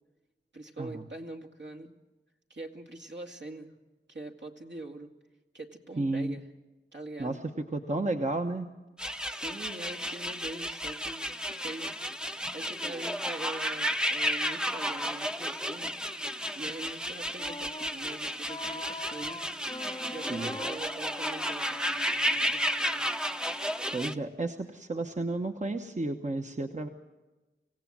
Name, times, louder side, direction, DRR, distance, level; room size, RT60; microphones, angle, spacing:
voice 1, 0.5-2.0 2.5-3.8 4.1-5.1 5.5-6.5 6.9-7.4 9.3-11.9 12.5-15.9 16.6-19.5 20.1-23.1, right 2 dB, 65° right, 3 dB, 2.3 m, -43 dB
voice 2, 6.0-6.4 7.2-7.4 7.7-8.7 20.3-20.5 23.9-26.9, right 2 dB, 35° right, 5 dB, 1.1 m, -32 dB
sound 1, 9.0-24.1, equal, 5° right, 0.8 m, -33 dB
Wind instrument woodwind instrument, 17.4-24.3, left 2 dB, 20° left, 0.9 m, -45 dB
25.5 x 17.0 x 7.6 m, 1.1 s
wide cardioid pair, 75°, 20 cm